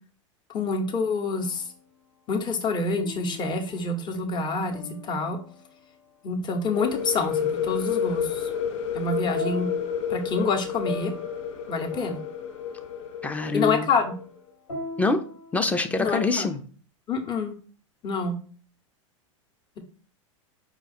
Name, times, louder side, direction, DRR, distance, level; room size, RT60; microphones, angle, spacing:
voice 1, 0.5-1.7 2.3-5.4 6.2-8.5 8.9-9.7 10.1-11.1 11.7-12.2 13.5-14.1 16.0-16.5 17.1-17.5 18.0-18.4, left 3 dB, 25° left, 5 dB, 0.9 m, -27 dB
sound 1, 0.7-1.9 3.0-6.2 9.3-16.4, left 2 dB, 85° left, 1.8 m, -42 dB
sound 2, 6.6-14.2, left 8 dB, 70° left, 0.6 m, -30 dB
voice 2, 13.2-13.9 15.0-15.2 15.5-16.6, left 3 dB, 10° left, 7 dB, 0.5 m, -25 dB
4.9 x 2.3 x 4.2 m, 0.40 s
hypercardioid pair, 100°, 17 cm